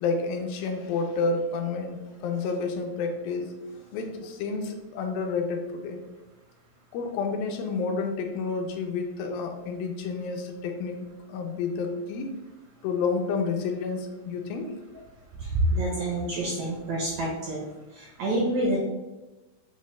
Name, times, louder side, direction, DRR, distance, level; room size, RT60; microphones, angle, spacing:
voice 1, 0.0-3.5 3.9-6.0 6.9-11.0 11.3-12.3 12.8-14.7, left 4 dB, 85° left, 4 dB, 2.2 m, -30 dB
voice 2, 15.7-17.6 18.2-18.8, right 1 dB, 75° right, -5 dB, 1.7 m, -27 dB
6.2 x 2.1 x 3.1 m, 1.0 s
omnidirectional pair, 4.1 m